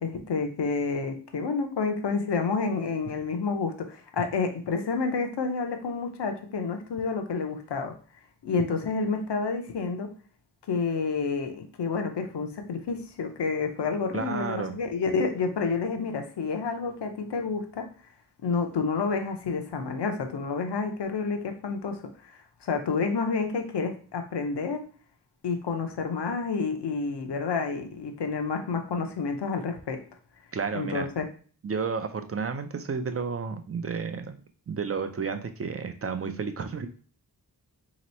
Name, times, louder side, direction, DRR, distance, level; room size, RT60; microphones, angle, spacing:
voice 1, 0.0-7.9 8.4-10.1 10.7-17.9 18.4-24.8 25.4-30.0 30.7-31.2, left 4 dB, 80° left, 5 dB, 0.7 m, -29 dB
voice 2, 14.1-14.8 30.5-31.1 31.6-34.4 34.7-36.9, right 5 dB, 35° right, 8 dB, 0.4 m, -31 dB
3.0 x 3.0 x 4.2 m, 0.41 s
wide cardioid pair, 105°, 41 cm